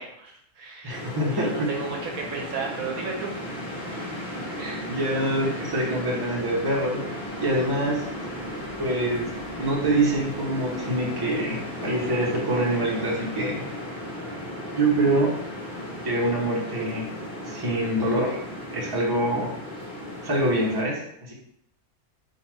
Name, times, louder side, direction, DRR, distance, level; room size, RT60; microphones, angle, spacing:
voice 1, 0.0-3.3 4.0-4.9, right 4 dB, 70° right, 0 dB, 1.2 m, -35 dB
voice 2, 0.8-1.7 4.8-7.0 7.4-8.0 8.8-13.6 14.7-15.3 16.0-17.1 17.4-18.4 18.7-19.5 20.2-21.3, right 1 dB, 15° right, -4 dB, 1.1 m, -25 dB
sound 1, 0.9-20.8, left 1 dB, 35° left, 1.3 m, -35 dB
4.0 x 2.9 x 4.5 m, 0.72 s
omnidirectional pair, 1.6 m